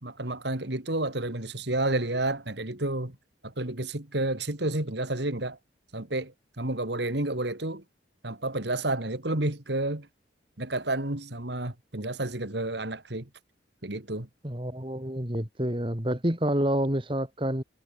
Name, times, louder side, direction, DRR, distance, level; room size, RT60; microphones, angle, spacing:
voice 1, 0.0-3.2 3.4-5.6 5.9-7.8 8.2-10.1 10.6-13.3 13.8-14.3, right 2 dB, 60° right, 2.6 m, -30 dB
voice 2, 14.4-17.6, right 1 dB, 25° right, 3.3 m, -28 dB
head